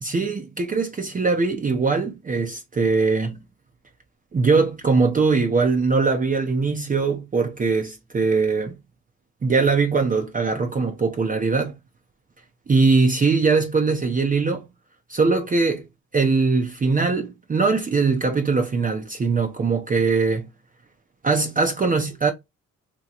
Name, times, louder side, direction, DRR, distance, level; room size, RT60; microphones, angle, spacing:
voice 1, 0.0-3.4 4.3-8.7 9.4-11.7 12.7-14.7 15.1-15.9 16.1-20.5 21.2-22.3, right 4 dB, 25° right, 0.6 m, -21 dB
2.9 x 2.2 x 3.8 m
cardioid pair, 75°, 31 cm